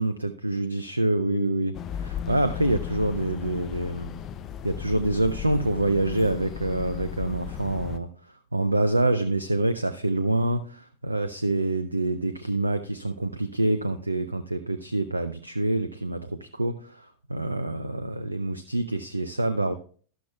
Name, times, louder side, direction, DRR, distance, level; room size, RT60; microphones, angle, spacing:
voice 1, 0.0-4.1 4.6-19.8, right 2 dB, 85° right, 11 dB, 0.4 m, -26 dB
sound 1, 1.7-8.0, left 9 dB, 30° left, 0.6 m, -35 dB
12.0 x 12.0 x 2.3 m, 0.43 s
figure-of-eight pair, 90°, 0 cm